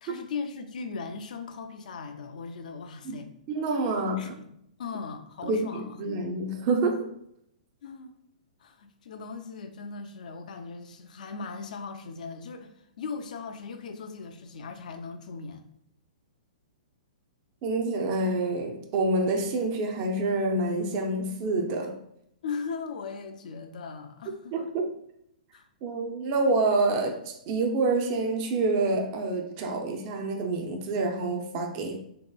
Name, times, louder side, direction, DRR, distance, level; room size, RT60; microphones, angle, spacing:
voice 1, 0.0-3.3 4.0-4.4 4.8-6.0 7.8-8.2 8.6-15.7 22.4-24.5 25.5-25.7, left 5 dB, 70° left, 0.3 m, -38 dB
voice 2, 3.5-4.3 5.4-7.1 17.6-22.0 24.5-24.9 25.8-32.0, right 2 dB, 35° right, 0.4 m, -27 dB
2.9 x 2.7 x 2.2 m
hypercardioid pair, 135°, 4 cm